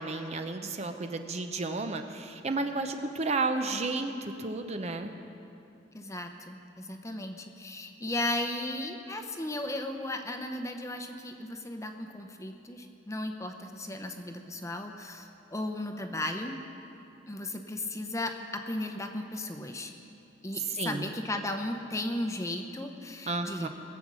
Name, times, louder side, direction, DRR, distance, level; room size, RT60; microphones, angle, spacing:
voice 1, 0.0-5.1 20.7-21.1 23.3-23.7, right 3 dB, 35° right, 6 dB, 0.7 m, -32 dB
voice 2, 5.9-16.5 17.3-19.9 20.4-23.7, left 1 dB, 15° left, 5 dB, 0.8 m, -35 dB
21.0 x 8.0 x 6.2 m, 2.7 s
head